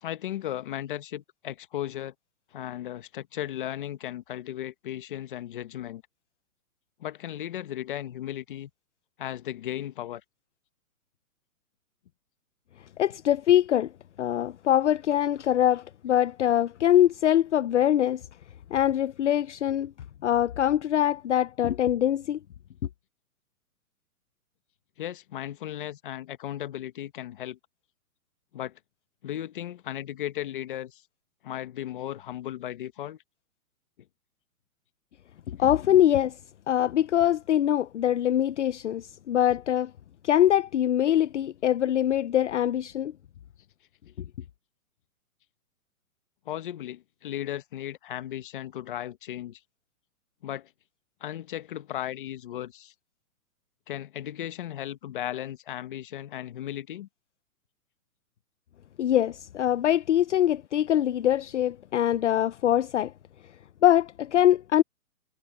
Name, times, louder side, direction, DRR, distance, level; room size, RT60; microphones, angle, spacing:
voice 1, 0.0-2.1 2.5-6.0 7.0-8.7 9.2-10.2 25.0-27.6 28.5-28.8 29.2-31.0 31.4-33.2 46.4-49.6 50.4-50.7 51.2-52.9 53.9-57.1, left 12 dB, 35° left, 1.1 m, -36 dB
voice 2, 13.0-13.9 14.2-18.2 18.7-19.9 20.2-22.4 35.5-36.4 36.7-39.9 40.2-43.1 59.0-63.1 63.8-64.8, left 11 dB, 50° left, 0.8 m, -23 dB
hypercardioid pair, 170°, 44 cm